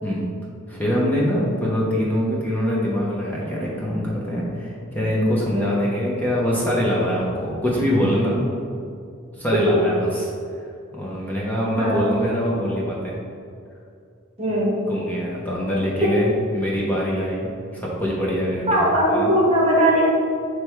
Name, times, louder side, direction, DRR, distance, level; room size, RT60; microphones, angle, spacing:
voice 1, 0.7-8.4 9.4-10.3 10.9-13.1 14.5-14.6 14.9-18.7 19.1-19.3, equal, 10° left, -6 dB, 0.9 m, -23 dB
voice 2, 14.4-14.8 16.0-16.4 18.7-20.0, equal, 30° right, -4 dB, 1.2 m, -20 dB
6.8 x 3.3 x 4.6 m, 2.4 s
head